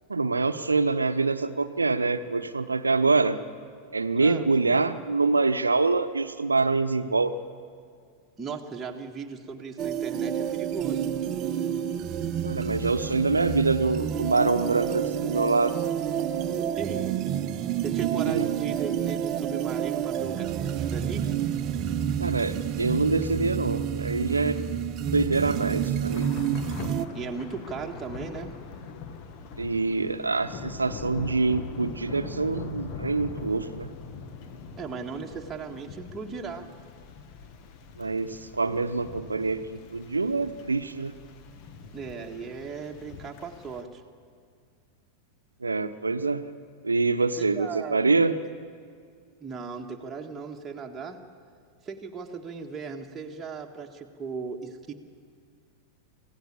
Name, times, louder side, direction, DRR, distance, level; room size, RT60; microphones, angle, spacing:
voice 1, 0.1-3.4 3.9-7.3 12.4-15.7 18.3-18.4 22.2-24.6 25.1-26.3 29.6-33.9 38.0-41.1 45.6-46.4 46.8-48.3, right 3 dB, 80° right, 11 dB, 0.9 m, -25 dB
voice 2, 4.1-4.5 8.4-11.1 16.8-17.4 17.8-21.3 27.1-28.6 34.8-36.7 41.9-44.0 47.4-48.0 49.4-51.2 51.8-54.9, right 5 dB, 15° right, 0 dB, 1.7 m, -37 dB
sound 1, 9.8-27.1, right 9 dB, 35° right, 0.9 m, -29 dB
Thunder / Rain, 26.1-43.8, left 5 dB, 40° left, 1.7 m, -42 dB
25.0 x 16.0 x 8.6 m, 2.1 s
figure-of-eight pair, 90°, 0 cm